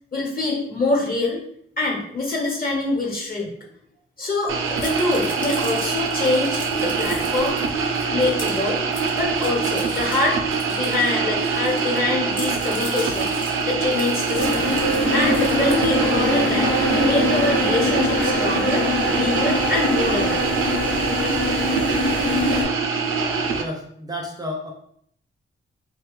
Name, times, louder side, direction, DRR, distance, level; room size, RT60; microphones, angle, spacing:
voice 1, 0.1-1.4 1.8-3.5 4.2-7.6 8.1-8.8 9.2-10.4 10.7-13.3 13.7-14.6 15.1-18.8 19.2-20.5, left 2 dB, 45° left, -1 dB, 1.0 m, -24 dB
sound 1, 4.5-23.6, right 5 dB, 90° right, 0.4 m, -24 dB
sound 2, 4.8-12.0 12.3-16.3, left 1 dB, 20° left, 0.8 m, -39 dB
sound 3, 14.3-22.6, left 1 dB, 75° left, 0.8 m, -23 dB
voice 2, 23.5-24.7, left 1 dB, 20° right, 0 dB, 0.4 m, -31 dB
3.2 x 2.2 x 3.0 m, 0.68 s
wide cardioid pair, 105°, 21 cm